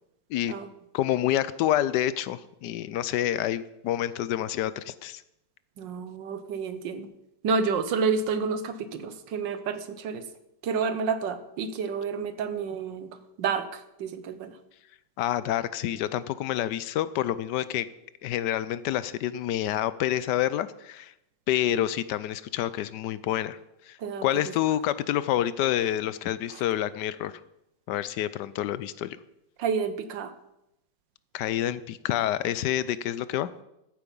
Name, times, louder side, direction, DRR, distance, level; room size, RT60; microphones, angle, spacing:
voice 1, 0.9-5.2 15.2-17.9 18.2-21.1 21.5-23.6 23.9-24.0 24.2-27.3 27.9-29.2 31.3-33.5, left 12 dB, 75° left, 16 dB, 1.2 m, -28 dB
voice 2, 5.8-7.1 7.4-10.3 10.6-14.5 24.0-24.5 26.5-26.6 29.6-30.3, right 5 dB, 90° right, 11 dB, 1.6 m, -30 dB
14.0 x 8.6 x 5.3 m, 0.86 s
omnidirectional pair, 1.9 m